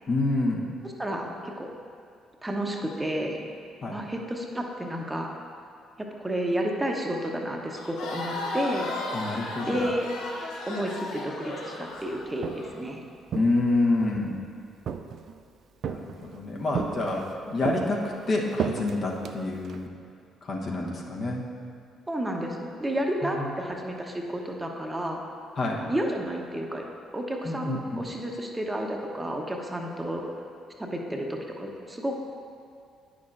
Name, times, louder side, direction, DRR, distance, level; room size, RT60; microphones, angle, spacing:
voice 1, 0.1-0.6 3.8-4.0 9.1-9.8 13.3-14.4 15.8-19.9 20.4-21.4 23.2-23.5 25.6-25.8 27.4-28.0, left 2 dB, 50° left, -2 dB, 1.0 m, -28 dB
voice 2, 0.8-1.7 2.4-3.4 3.9-5.3 6.2-8.9 9.7-10.1 10.7-13.0 22.1-25.2 25.9-26.8 27.1-30.3 30.8-32.2, right 1 dB, 15° right, 1 dB, 0.9 m, -31 dB
Crowd, 7.8-12.7, left 2 dB, 75° left, 0.8 m, -35 dB
Walk footsteps, 12.2-12.8 13.3-14.3 14.9-15.4 15.8-16.4 16.7-17.3 17.6-19.9, right 7 dB, 55° right, 0.3 m, -34 dB
9.3 x 6.3 x 2.5 m, 2.3 s
hypercardioid pair, 50°, 0 cm